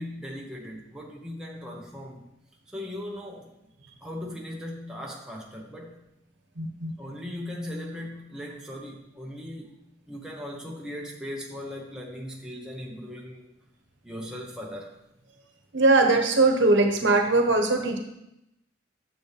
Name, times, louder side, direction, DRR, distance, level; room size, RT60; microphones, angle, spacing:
voice 1, 0.0-2.3 2.7-3.6 4.0-6.0 7.0-9.7 10.1-13.5 14.0-15.0, left 1 dB, 5° right, -2 dB, 0.8 m, -38 dB
voice 2, 6.6-6.9 15.7-18.0, right 2 dB, 60° right, 4 dB, 1.1 m, -21 dB
9.2 x 6.9 x 3.3 m, 0.85 s
head